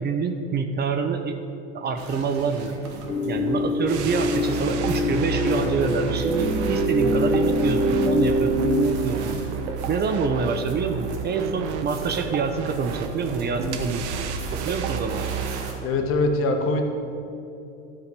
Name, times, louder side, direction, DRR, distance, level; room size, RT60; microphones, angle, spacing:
voice 1, 0.0-1.3 1.7-2.7 3.3-9.3 9.9-14.1 14.5-15.4, right 5 dB, 30° right, 6 dB, 0.7 m, -26 dB
sound 1, 2.0-15.7, right 1 dB, 60° right, 2.0 m, -38 dB
sound 2, 3.1-8.9, left 1 dB, 25° left, 2.5 m, -24 dB
sound 3, 3.9-15.7, right 7 dB, 80° right, 1.0 m, -31 dB
voice 2, 15.8-16.9, left 2 dB, 40° left, 4 dB, 1.3 m, -22 dB
11.0 x 4.9 x 6.6 m, 2.7 s
supercardioid pair, 100°, 33 cm